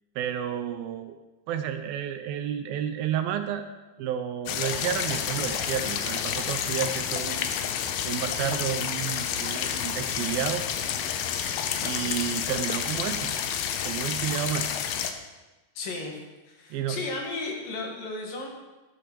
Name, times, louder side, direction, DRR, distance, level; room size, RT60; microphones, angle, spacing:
voice 1, 0.2-1.2 1.5-3.7 4.0-7.5 8.0-10.7 11.8-13.6 13.8-14.7 16.7-17.0, right 9 dB, 80° right, 8 dB, 2.4 m, -31 dB
sound 1, 4.5-15.1, left 8 dB, 80° left, 2.5 m, -30 dB
voice 2, 15.7-18.5, left 3 dB, 65° left, 0 dB, 3.4 m, -34 dB
12.0 x 8.3 x 6.1 m, 1.1 s
omnidirectional pair, 4.4 m